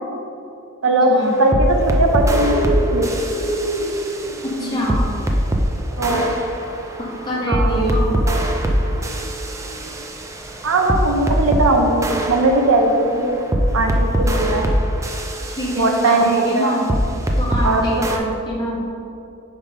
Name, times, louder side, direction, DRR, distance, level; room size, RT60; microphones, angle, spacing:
sound 1, 1.2-5.7 6.0-11.7 12.0-17.7 18.0-18.2, equal, 15° right, 0.4 m, -22 dB
voice 1, 1.4-2.6 2.9-3.1 4.6-4.8 6.0-6.3 7.5-7.8 8.3-8.4 8.8-9.0 10.6-13.4 13.7-14.6 15.7-16.7 17.6-17.8, right 2 dB, 65° right, 3 dB, 0.6 m, -19 dB
Bird, 1.8-13.9, right 1 dB, 70° left, 1.0 m, -31 dB
voice 2, 4.4-5.1 6.1-6.2 7.0-8.2 14.5-14.6 15.6-16.9 17.4-18.9, equal, 20° left, -6 dB, 1.5 m, -24 dB
5.1 x 5.0 x 5.3 m, 2.8 s
head